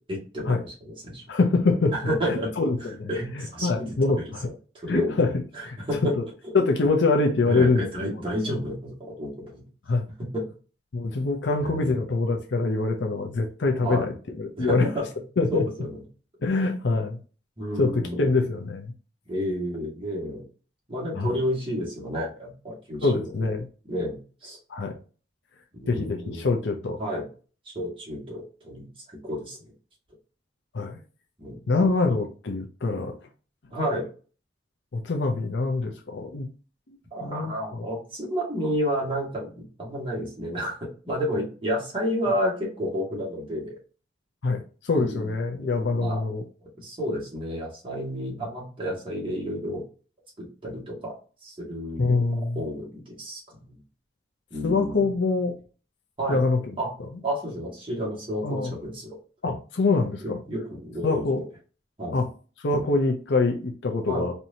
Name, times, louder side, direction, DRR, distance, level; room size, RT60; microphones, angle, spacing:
voice 1, 0.1-1.3 1.9-2.5 3.1-4.0 4.2-4.3 4.8-5.2 5.5-6.1 7.5-9.6 10.2-10.4 11.6-12.0 13.8-14.1 14.6-15.0 15.5-16.0 17.6-18.3 19.3-20.4 20.9-23.3 23.9-24.6 25.7-26.5 27.0-27.2 27.7-28.9 29.2-29.6 31.4-31.6 33.7-34.1 37.1-43.8 45.0-45.3 45.8-46.2 46.6-49.8 50.4-51.2 51.4-52.3 52.6-53.8 54.5-55.1 56.2-56.4 56.8-56.9 57.2-59.2 60.2-61.3 62.0-62.2 64.1-64.2, equal, 30° right, 1.8 m, -31 dB
voice 2, 1.3-2.0 2.2-3.1 3.3-4.5 4.9-5.3 5.6-5.8 6.2-6.3 6.5-7.8 9.9-10.1 10.9-14.9 15.4-15.6 16.4-17.2 17.8-18.9 21.1-21.3 23.0-23.7 24.7-24.9 25.9-27.0 30.7-31.0 31.7-33.1 34.9-36.5 37.2-37.9 44.4-46.4 52.0-52.6 54.6-55.5 56.3-56.6 58.4-58.7 59.4-60.4 61.0-61.4 62.1-62.3 62.6-64.3, left 3 dB, 90° left, 0.6 m, -24 dB
4.4 x 2.7 x 2.7 m
head